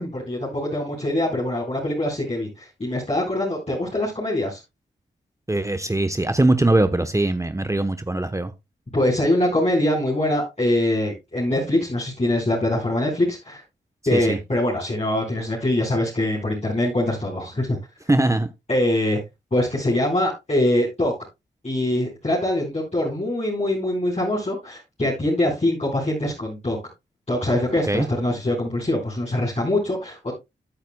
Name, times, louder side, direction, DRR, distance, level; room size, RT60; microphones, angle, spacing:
voice 1, 0.0-4.6 8.9-13.6 14.1-17.8 18.7-19.2 19.5-21.1 21.6-26.8 27.3-30.3, left 1 dB, 35° left, 4.5 m, -23 dB
voice 2, 5.5-8.5 14.1-14.4 18.1-18.5 27.9-28.1, right 2 dB, 15° right, 1.0 m, -21 dB
15.0 x 8.4 x 2.3 m
cardioid pair, 45°, 19 cm